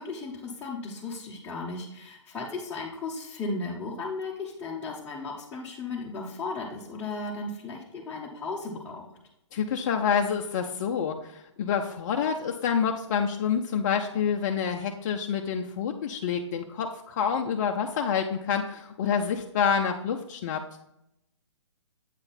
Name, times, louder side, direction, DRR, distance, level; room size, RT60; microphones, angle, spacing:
voice 1, 0.0-9.1, left 3 dB, 10° left, -6 dB, 0.9 m, -35 dB
voice 2, 9.5-20.8, left 7 dB, 35° left, 3 dB, 0.5 m, -28 dB
8.0 x 3.8 x 4.1 m, 0.82 s
hypercardioid pair, 140°, 16 cm